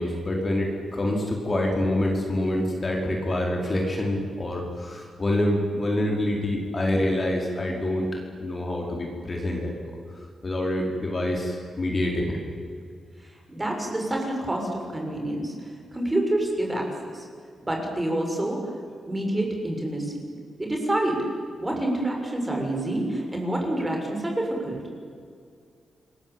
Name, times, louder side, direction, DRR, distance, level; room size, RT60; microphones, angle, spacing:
voice 1, 0.0-8.0 8.4-9.7 10.4-12.4, left 1 dB, 30° left, 0 dB, 4.9 m, -26 dB
voice 2, 13.5-15.5 15.9-16.8 17.1-17.2 17.6-18.7 19.1-20.3 20.6-21.2 21.6-24.8, right 1 dB, 15° right, 1 dB, 6.6 m, -27 dB
29.0 x 21.5 x 9.1 m, 2.2 s
wide cardioid pair, 125°, 0 cm